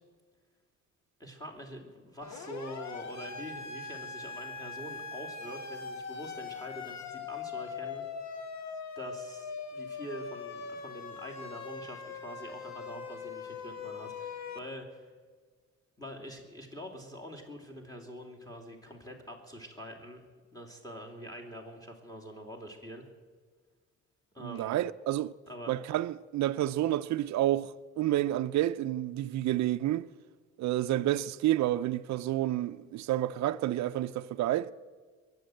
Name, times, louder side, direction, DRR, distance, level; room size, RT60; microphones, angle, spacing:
voice 1, 1.2-8.1 8.9-15.1 16.0-20.2 20.5-23.0 24.3-24.8 25.5-25.8, equal, 10° left, 2.9 m, -45 dB
Siren, 2.2-14.6, left 5 dB, 65° left, 1.5 m, -41 dB
voice 2, 24.4-25.3 25.7-30.1 30.6-34.7, right 13 dB, 65° right, 0.5 m, -29 dB
22.5 x 8.1 x 7.8 m
cardioid pair, 90°, 30 cm